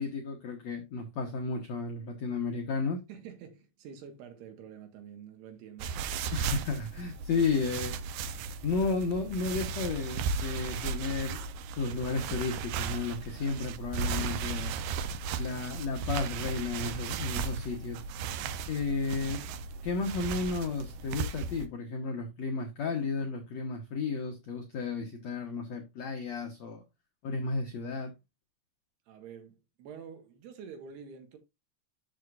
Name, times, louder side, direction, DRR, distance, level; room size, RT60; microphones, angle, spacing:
voice 1, 0.0-3.0 6.3-8.0 8.6-14.7 15.4-18.0 18.7-19.4 19.8-26.8 27.2-28.1, left 4 dB, 85° left, 1.5 m, -33 dB
voice 2, 3.1-5.9 29.1-31.4, right 7 dB, 70° right, 3.5 m, -47 dB
sound 1, 5.8-21.7, right 5 dB, 90° right, 1.9 m, -36 dB
11.5 x 6.4 x 2.5 m
omnidirectional pair, 5.1 m